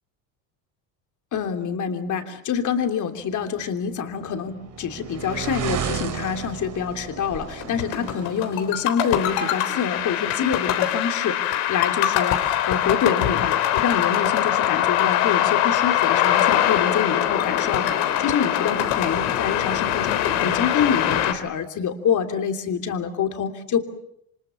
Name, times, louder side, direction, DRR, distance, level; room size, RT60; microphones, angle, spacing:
voice 1, 1.3-23.8, left 7 dB, 45° left, 6 dB, 3.2 m, -26 dB
sound 1, 3.9-8.8, right 8 dB, 45° right, 3.5 m, -33 dB
sound 2, 7.6-21.3, left 11 dB, 85° left, 3.7 m, -22 dB
28.0 x 25.0 x 7.1 m, 0.75 s
cardioid pair, 130°, 43 cm